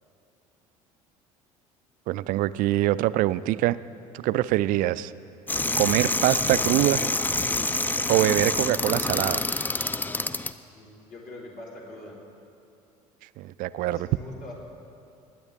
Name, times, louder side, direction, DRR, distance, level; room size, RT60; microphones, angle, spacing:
voice 1, 2.1-3.8 4.1-5.1 5.8-7.0 8.1-9.4 13.4-14.1, right 15 dB, 50° right, 17 dB, 0.4 m, -24 dB
sound 1, 5.5-10.5, left 2 dB, 10° left, 0.4 m, -26 dB
voice 2, 10.7-12.2 13.8-14.5, left 2 dB, 50° left, -3 dB, 3.6 m, -43 dB
20.0 x 9.5 x 3.5 m, 2.6 s
figure-of-eight pair, 60°, 19 cm